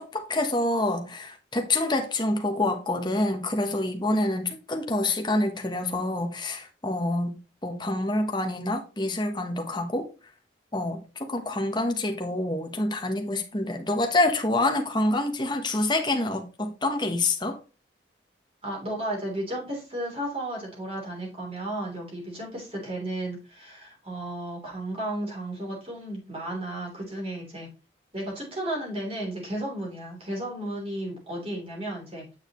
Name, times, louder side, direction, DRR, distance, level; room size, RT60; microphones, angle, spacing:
voice 1, 0.0-10.1 10.7-17.6, left 2 dB, 25° left, 1.2 m, -27 dB
voice 2, 18.6-27.7 28.1-32.2, right 1 dB, 30° right, 3.6 m, -33 dB
8.8 x 6.4 x 3.2 m
head